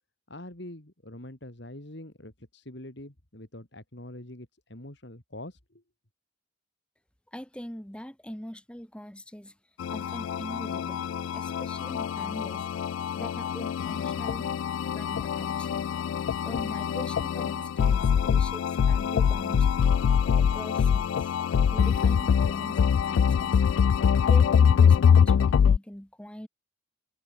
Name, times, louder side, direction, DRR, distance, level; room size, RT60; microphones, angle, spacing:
voice 1, 0.3-5.8, left 1 dB, 55° left, 2.9 m, -44 dB
voice 2, 7.3-9.6 9.9-11.0 11.3-12.7 13.1-14.5 14.8-15.9 16.4-19.7 20.4-21.4 21.7-23.6 24.2-26.5, equal, 5° left, 1.1 m, -42 dB
sound 1, 9.8-25.8, left 7 dB, 75° left, 0.3 m, -24 dB
head